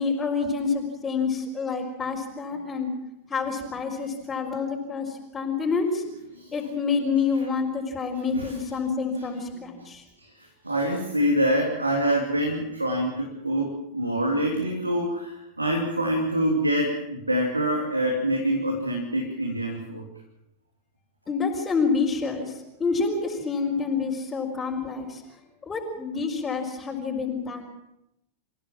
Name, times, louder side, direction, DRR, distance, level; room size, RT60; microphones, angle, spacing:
voice 1, 0.0-2.9 3.3-6.0 6.5-10.0 21.3-25.4 25.7-27.7, left 5 dB, 20° left, -1 dB, 4.5 m, -28 dB
voice 2, 6.3-6.8 8.3-8.6 9.2-9.3 10.2-20.0, equal, 85° right, 1 dB, 3.0 m, -26 dB
27.5 x 16.0 x 7.4 m, 0.85 s
figure-of-eight pair, 90°, 0 cm